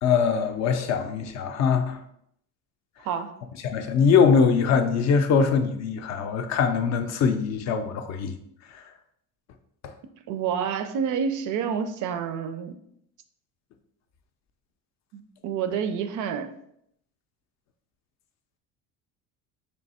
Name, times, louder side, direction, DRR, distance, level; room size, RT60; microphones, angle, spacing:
voice 1, 0.0-2.0 3.6-8.3 8.7-8.8, left 6 dB, 45° left, 0.4 m, -22 dB
voice 2, 3.0-3.4 10.3-12.7 15.1-16.5, right 7 dB, 55° right, 0.4 m, -28 dB
3.3 x 2.7 x 4.1 m
cardioid pair, 140°, 37 cm